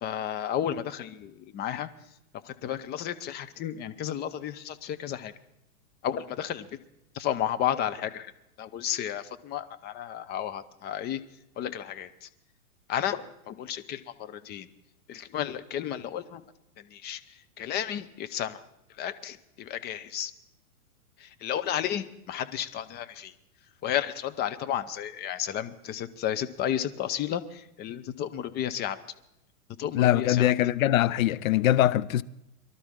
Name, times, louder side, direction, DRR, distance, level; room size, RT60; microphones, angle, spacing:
voice 1, 0.0-1.9 2.6-5.3 6.0-6.7 7.2-8.3 8.6-11.2 11.6-12.1 12.9-14.7 15.1-16.4 16.9-17.2 17.6-18.6 19.0-20.3 21.4-23.3 23.8-29.0 29.8-30.5, left 10 dB, 25° left, 0.7 m, -32 dB
voice 2, 29.9-32.2, left 13 dB, 65° left, 0.6 m, -22 dB
23.0 x 12.5 x 3.7 m
hypercardioid pair, 125°, 44 cm